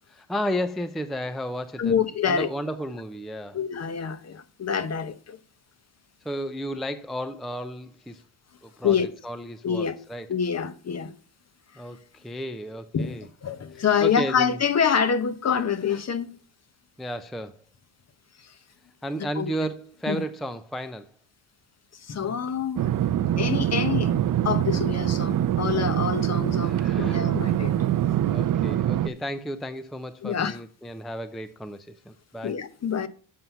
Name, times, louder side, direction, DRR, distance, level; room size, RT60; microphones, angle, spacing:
voice 1, 0.1-1.9 2.2-3.6 6.2-8.2 8.6-9.0 9.2-10.3 11.8-13.3 13.7-14.6 17.0-17.6 19.0-21.1 26.6-27.3 27.9-32.6, equal, ahead, 0.5 m, -33 dB
voice 2, 1.8-2.5 3.5-5.4 8.8-9.1 9.6-10.0 10.3-11.1 12.9-16.3 19.4-19.5 20.1-20.2 22.0-22.8 23.4-24.1 24.4-27.8 30.2-30.6 32.4-33.1, left 7 dB, 30° left, 0.9 m, -26 dB
sound 1, 22.8-29.1, right 11 dB, 40° right, 0.6 m, -24 dB
7.6 x 5.6 x 5.5 m
supercardioid pair, 80°, 48 cm